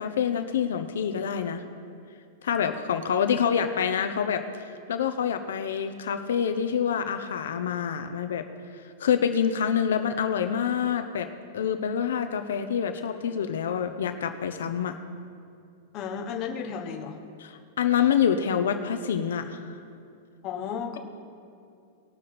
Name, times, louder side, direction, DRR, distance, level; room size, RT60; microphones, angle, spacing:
voice 1, 0.0-1.6 2.4-8.4 8.7-11.3 11.5-15.0 17.4-19.8, left 8 dB, 90° left, 8 dB, 0.8 m, -27 dB
voice 2, 15.9-17.2 20.4-21.0, left 7 dB, 30° left, 2 dB, 1.2 m, -33 dB
20.0 x 6.8 x 4.3 m, 2.4 s
supercardioid pair, 165°, 0 cm